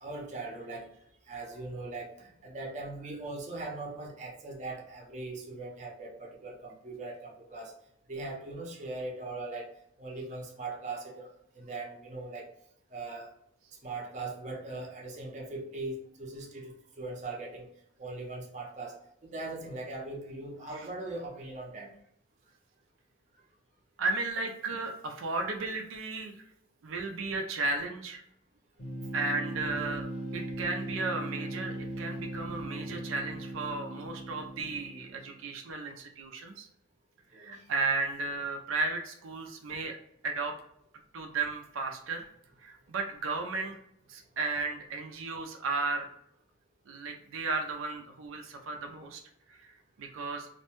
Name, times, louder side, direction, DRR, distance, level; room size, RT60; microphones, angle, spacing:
voice 1, 0.0-0.9 1.3-7.7 8.1-9.7 10.0-11.3 11.6-12.5 12.9-13.3 13.8-17.7 18.0-21.9 32.4-33.0 37.3-37.6, right 2 dB, 35° right, -2 dB, 0.6 m, -40 dB
voice 2, 24.0-26.3 26.8-28.2 29.1-30.0 30.3-36.7 37.3-40.0 40.2-40.5 41.1-42.3 42.6-43.8 44.1-46.1 46.9-49.2 49.5-49.7 50.0-50.5, right 3 dB, 85° right, 3 dB, 0.4 m, -34 dB
sound 1, 28.8-35.4, right 1 dB, 80° left, 1.0 m, -39 dB
2.5 x 2.1 x 2.9 m, 0.72 s
head